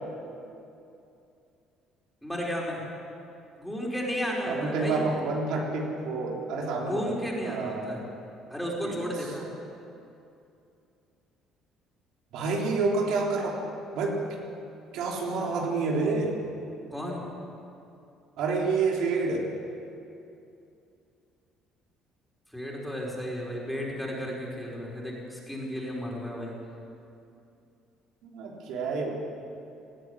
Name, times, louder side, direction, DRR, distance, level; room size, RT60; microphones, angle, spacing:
voice 1, 2.2-2.8 3.6-5.1 6.8-8.0 8.5-9.5 16.9-17.2 22.5-26.5, equal, ahead, -3 dB, 5.2 m, -33 dB
voice 2, 4.5-7.1 7.4-7.9 8.8-9.1 12.3-13.6 13.9-14.2 14.9-16.4 18.4-19.5 28.2-29.1, right 3 dB, 75° right, -1 dB, 3.5 m, -28 dB
19.0 x 14.0 x 9.8 m, 2.6 s
cardioid pair, 120°, 0 cm